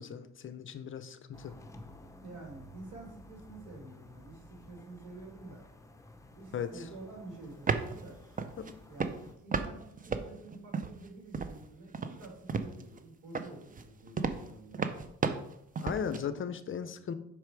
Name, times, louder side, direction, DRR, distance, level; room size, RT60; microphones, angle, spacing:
voice 1, 0.0-1.6 6.5-6.9 8.6-8.8 15.8-17.1, left 7 dB, 45° left, 0.6 m, -37 dB
sound 1, 1.3-9.3, left 1 dB, 10° left, 0.8 m, -54 dB
voice 2, 2.2-5.6 6.4-8.2 8.9-14.9, right 2 dB, 80° right, 2.5 m, -49 dB
sound 2, 7.4-8.0 8.4-8.7 9.0-9.7 10.0-11.1 11.3-11.6 11.9-13.0 13.3-16.2, right 5 dB, 25° right, 0.6 m, -33 dB
6.0 x 4.7 x 4.6 m
cardioid pair, 90°, 30 cm